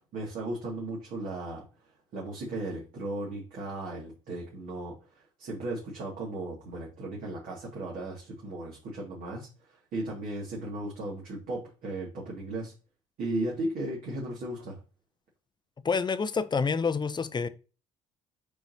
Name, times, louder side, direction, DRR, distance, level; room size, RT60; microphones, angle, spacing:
voice 1, 0.0-1.6 2.1-4.9 5.4-9.5 9.9-12.7 13.2-14.8, right 2 dB, 60° right, 2.4 m, -36 dB
voice 2, 15.8-17.5, left 5 dB, 30° left, 0.8 m, -28 dB
8.2 x 4.7 x 2.8 m
hypercardioid pair, 55°, 16 cm